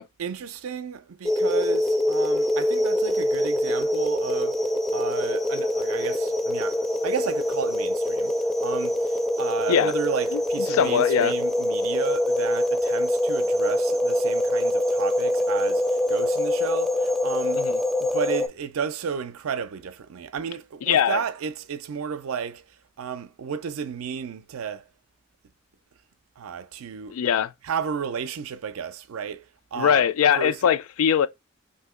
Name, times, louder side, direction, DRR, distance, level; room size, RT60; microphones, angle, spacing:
voice 1, 0.2-4.6 4.9-8.3 8.6-17.7 18.0-22.7 23.0-24.9 26.4-27.2 27.6-30.0 30.4-30.6, right 7 dB, 85° right, 0.4 m, -33 dB
sound 1, 1.2-18.5, left 1 dB, ahead, 0.3 m, -24 dB
voice 2, 10.7-11.3 17.5-17.8 20.9-21.2 27.1-27.5 29.8-31.3, left 8 dB, 85° left, 0.3 m, -21 dB
2.8 x 2.6 x 3.5 m
head